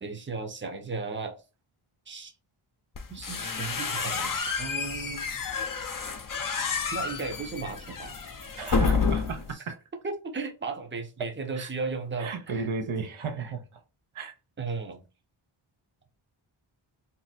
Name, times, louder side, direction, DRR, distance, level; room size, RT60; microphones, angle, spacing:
voice 1, 0.0-1.4 2.1-2.3 3.1-5.3 6.9-8.2 9.5-9.6 10.0-12.7 14.6-15.0, right 4 dB, 25° right, 0.7 m, -35 dB
sound 1, 3.0-9.5, left 5 dB, 40° left, 0.6 m, -30 dB
voice 2, 8.6-9.8 11.5-11.7 12.2-13.6 14.1-14.3, right 5 dB, 75° right, 0.7 m, -34 dB
2.7 x 2.1 x 3.9 m
cardioid pair, 40°, 50 cm